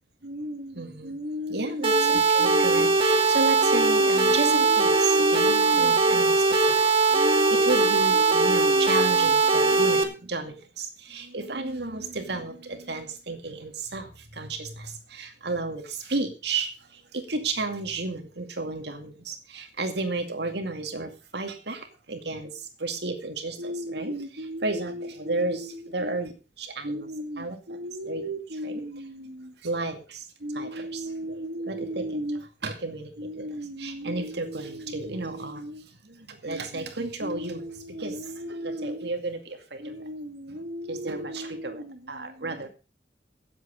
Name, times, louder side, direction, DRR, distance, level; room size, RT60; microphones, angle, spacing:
voice 1, 0.2-26.3 26.6-42.7, right 2 dB, 70° right, 6 dB, 2.3 m, -32 dB
sound 1, 1.8-10.0, right 3 dB, 30° right, 2.5 m, -21 dB
17.5 x 7.9 x 5.2 m, 0.32 s
head